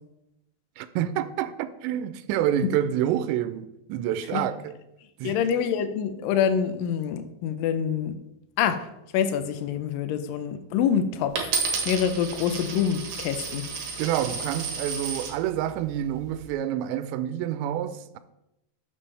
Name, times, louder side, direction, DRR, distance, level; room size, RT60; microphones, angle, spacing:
voice 1, 0.8-4.8 5.2-5.4 14.0-18.2, right 11 dB, 90° right, 2.8 m, -28 dB
voice 2, 5.2-8.1 8.6-8.9 9.1-11.4 11.9-13.6, left 8 dB, 85° left, 2.0 m, -26 dB
Coin (dropping), 11.4-15.4 16.1-16.5, right 5 dB, 60° right, 2.9 m, -32 dB
12.5 x 7.2 x 3.3 m
omnidirectional pair, 5.0 m